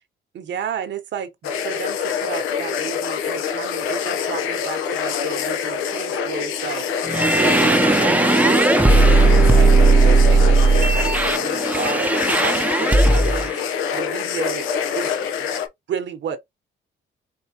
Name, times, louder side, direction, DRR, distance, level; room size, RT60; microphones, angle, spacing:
voice 1, 0.3-6.9 7.3-14.7 14.9-15.5 15.9-16.4, right 8 dB, 65° right, 1.0 m, -32 dB
sound 1, 1.4-15.7, left 7 dB, 90° left, 0.7 m, -25 dB
sound 2, 7.1-13.5, right 2 dB, 5° right, 0.6 m, -16 dB
4.6 x 2.8 x 2.8 m
cardioid pair, 90°, 20 cm